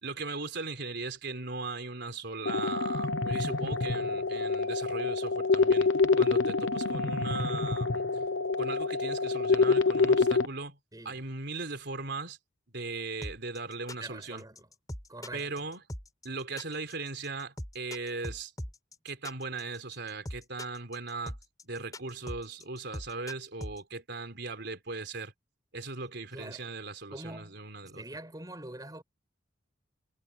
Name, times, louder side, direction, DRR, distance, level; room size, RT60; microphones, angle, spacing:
voice 1, 0.0-5.9 6.2-8.0 8.6-10.8 11.0-12.4 12.7-14.4 15.3-15.8 16.2-18.5 19.0-21.4 21.6-25.3 25.7-28.0, right 3 dB, 60° right, 4.1 m, -38 dB
sound 1, 2.5-10.5, left 4 dB, 80° left, 1.0 m, -27 dB
voice 2, 10.9-11.2 14.0-14.7 15.1-15.5 26.3-26.6 27.1-27.5 28.0-29.0, right 1 dB, 20° right, 7.2 m, -44 dB
sound 2, 13.2-23.8, left 1 dB, 20° left, 4.5 m, -41 dB
head